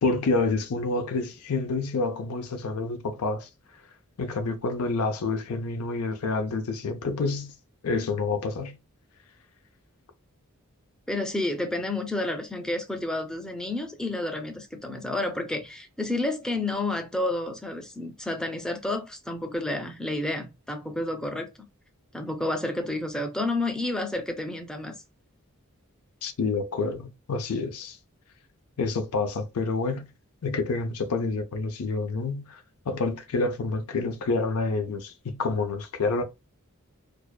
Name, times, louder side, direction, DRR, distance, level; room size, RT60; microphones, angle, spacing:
voice 1, 0.0-3.5 4.2-7.5 7.8-8.8 26.2-28.0 28.8-30.1 30.4-36.2, left 3 dB, 90° left, 0.5 m, -28 dB
voice 2, 11.1-21.5 22.1-25.0, left 2 dB, 5° left, 0.4 m, -30 dB
2.5 x 2.2 x 2.2 m
head